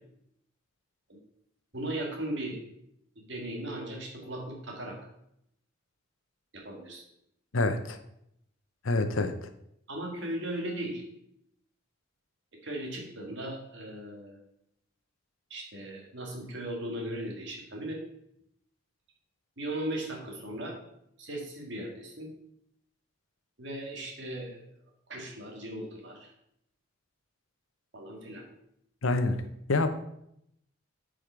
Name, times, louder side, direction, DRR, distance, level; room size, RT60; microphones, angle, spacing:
voice 1, 1.7-2.6 3.2-5.0 6.5-7.0 9.9-11.0 12.6-14.4 15.5-18.0 19.6-20.8 21.2-22.3 23.6-24.6 25.1-26.3 27.9-28.5, right 1 dB, 55° right, 1 dB, 2.0 m, -37 dB
voice 2, 7.5-8.0 8.8-9.5 29.0-29.3 29.7-29.9, left 2 dB, 75° left, 9 dB, 0.8 m, -26 dB
8.8 x 5.0 x 4.6 m, 0.77 s
head